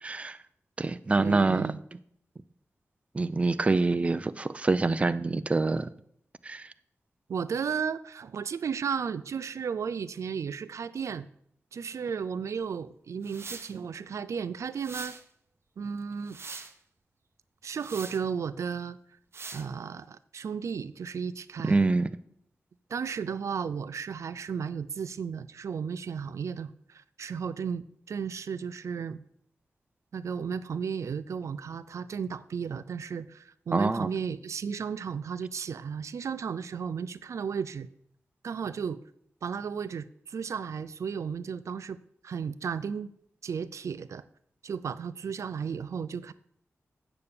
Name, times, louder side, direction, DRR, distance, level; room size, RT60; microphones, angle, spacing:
voice 1, 0.0-0.4 0.8-1.7 3.1-5.9 6.4-6.7 21.6-22.1 33.7-34.1, right 3 dB, 25° right, 0.4 m, -26 dB
voice 2, 1.2-1.8 7.3-11.3 11.7-15.2 15.8-16.4 17.6-19.0 19.5-21.8 22.9-29.2 30.1-37.9 38.4-39.0 39.4-42.0 42.2-43.1 43.4-44.2 44.6-46.3, right 6 dB, 85° right, 0.4 m, -34 dB
sound 1, 13.2-13.7 14.8-15.2 16.0-16.7 17.8-18.2 19.3-19.7, right 4 dB, 55° right, 0.8 m, -42 dB
8.7 x 6.9 x 6.7 m
wide cardioid pair, 110°, 5 cm